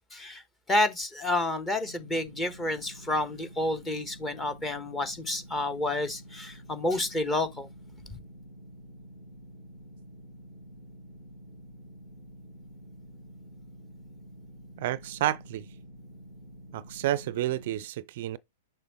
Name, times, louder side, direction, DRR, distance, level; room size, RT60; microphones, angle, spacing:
voice 1, 0.1-0.4 0.7-7.7, left 2 dB, 15° left, 1.2 m, -29 dB
sound 1, 1.8-17.8, equal, 80° left, 4.5 m, -49 dB
voice 2, 14.8-15.7 16.7-18.4, right 13 dB, 55° right, 0.4 m, -30 dB
6.6 x 5.6 x 3.1 m
figure-of-eight pair, 105°, 0 cm